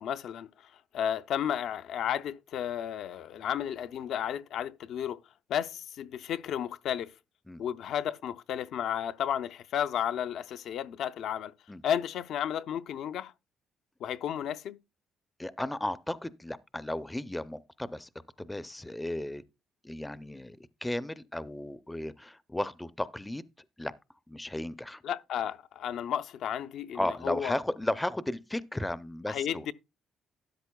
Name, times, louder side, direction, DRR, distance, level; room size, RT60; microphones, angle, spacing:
voice 1, 0.0-5.2 5.5-7.1 7.6-11.5 11.8-13.3 14.0-14.8 25.0-27.6 29.3-29.7, left 9 dB, 70° left, 0.5 m, -33 dB
voice 2, 15.4-18.1 18.4-19.4 19.8-23.4 23.8-23.9 24.3-25.0 26.9-29.7, left 1 dB, 10° left, 0.4 m, -34 dB
12.5 x 10.0 x 2.2 m
cardioid pair, 130°, 0 cm